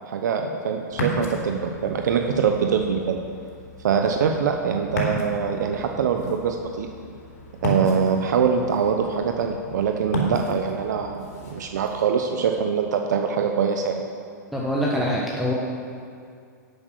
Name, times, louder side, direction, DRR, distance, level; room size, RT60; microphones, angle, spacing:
voice 1, 0.0-3.2 3.8-6.9 7.6-14.0, right 6 dB, 70° right, 4 dB, 1.0 m, -23 dB
Ocean, 0.9-12.0, equal, 65° left, 3.5 m, -34 dB
voice 2, 14.5-15.5, equal, ahead, -4 dB, 1.4 m, -24 dB
11.0 x 8.2 x 6.4 m, 2.3 s
hypercardioid pair, 120°, 10 cm